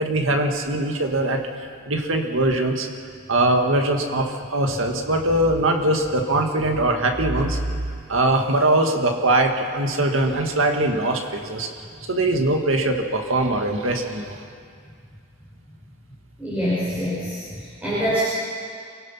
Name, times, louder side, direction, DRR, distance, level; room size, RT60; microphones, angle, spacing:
voice 1, 0.0-1.4 1.9-2.9 3.3-7.7 8.1-11.7 12.1-14.4, right 1 dB, 85° right, 3 dB, 2.1 m, -21 dB
voice 2, 16.4-18.2, equal, 5° right, -10 dB, 5.6 m, -25 dB
26.5 x 18.0 x 5.8 m, 2.2 s
head